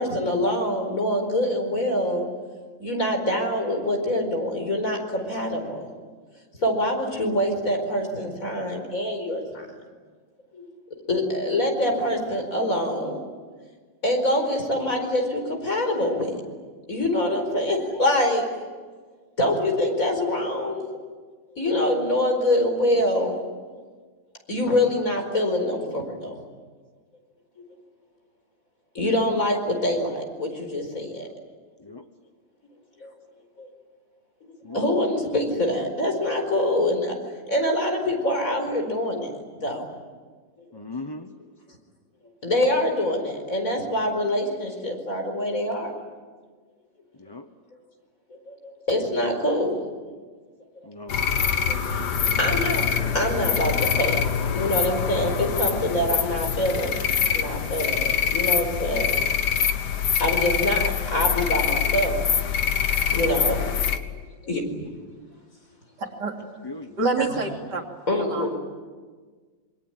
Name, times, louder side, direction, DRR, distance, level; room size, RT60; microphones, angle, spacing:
voice 1, 0.0-2.3 2.8-5.9 6.6-9.7 10.5-10.7 11.1-13.2 14.0-16.4 16.9-18.4 19.4-20.8 21.6-23.4 24.5-26.3 28.9-31.3 33.0-33.1 33.6-33.7 34.7-37.1 37.5-39.3 39.6-39.9 42.4-45.9 48.3-49.8 51.7-52.1 52.4-52.9 53.1-54.2 54.5-56.9 57.2-59.1 60.2-62.2 63.1-63.6 64.0-64.1 64.4-64.6 67.2-67.3 68.1-68.5, left 1 dB, 45° left, 3 dB, 5.2 m, -25 dB
voice 2, 40.7-41.3 47.2-47.5 50.9-51.2 63.4-63.6 66.6-66.9, left 2 dB, 25° left, 7 dB, 0.5 m, -38 dB
sound 1, 51.1-64.0, left 7 dB, 60° left, 1.8 m, -24 dB
voice 3, 66.0-66.4 67.0-67.8 68.2-68.6, right 3 dB, 60° right, 2 dB, 3.5 m, -27 dB
27.0 x 24.0 x 9.0 m, 1.5 s
omnidirectional pair, 2.0 m